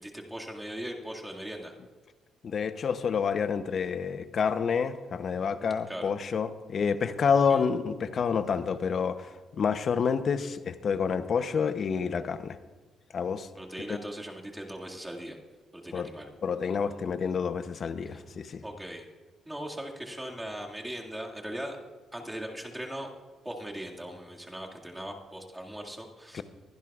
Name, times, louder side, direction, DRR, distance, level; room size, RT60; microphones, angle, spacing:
voice 1, 0.0-1.7 5.9-6.1 7.4-7.6 13.6-15.4 15.7-16.3 18.1-18.2 18.6-19.0 19.5-21.8 22.1-23.1 23.4-26.4, right 1 dB, 10° right, -1 dB, 2.0 m, -39 dB
voice 2, 2.4-12.6 13.1-13.5 13.9-14.0 15.9-16.1 16.4-18.6 26.3-26.4, left 6 dB, 50° left, 12 dB, 0.7 m, -28 dB
23.0 x 11.0 x 2.4 m, 1.4 s
cardioid pair, 90°, 0 cm